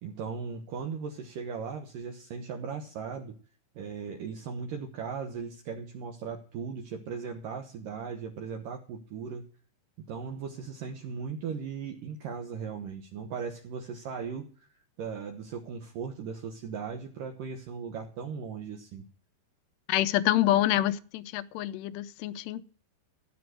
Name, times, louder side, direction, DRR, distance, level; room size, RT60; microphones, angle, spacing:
voice 1, 0.0-3.4 3.8-9.4 10.1-14.7 15.0-19.0, right 6 dB, 80° right, 1.9 m, -38 dB
voice 2, 19.9-22.6, left 14 dB, 80° left, 2.5 m, -27 dB
15.0 x 6.1 x 7.8 m
omnidirectional pair, 5.6 m